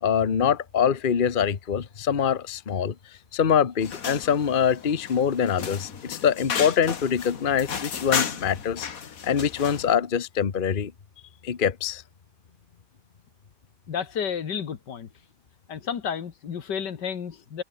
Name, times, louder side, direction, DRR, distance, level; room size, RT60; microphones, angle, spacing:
voice 1, 0.0-2.9 3.3-8.9 9.2-10.9 11.4-12.0, left 7 dB, 35° left, 1.1 m, -24 dB
sound 1, 3.8-9.9, left 7 dB, 55° left, 1.9 m, -33 dB
voice 2, 13.9-15.1 15.7-17.6, left 7 dB, 80° left, 2.2 m, -31 dB
omnidirectional pair, 1.8 m